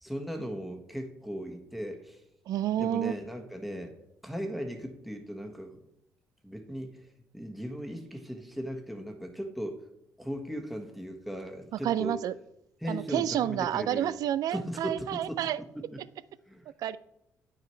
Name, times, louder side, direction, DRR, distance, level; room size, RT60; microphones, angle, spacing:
voice 1, 0.0-2.2 2.8-3.9 4.2-5.8 6.4-7.1 7.3-9.8 10.2-12.2 12.8-14.2 14.5-15.4 15.7-16.0 16.5-16.7, equal, ahead, 4 dB, 1.4 m, -37 dB
voice 2, 2.5-3.1 11.7-12.3 12.9-15.6 16.8-17.0, right 11 dB, 70° right, 17 dB, 0.4 m, -29 dB
9.1 x 6.3 x 4.5 m, 0.81 s
supercardioid pair, 70°, 7 cm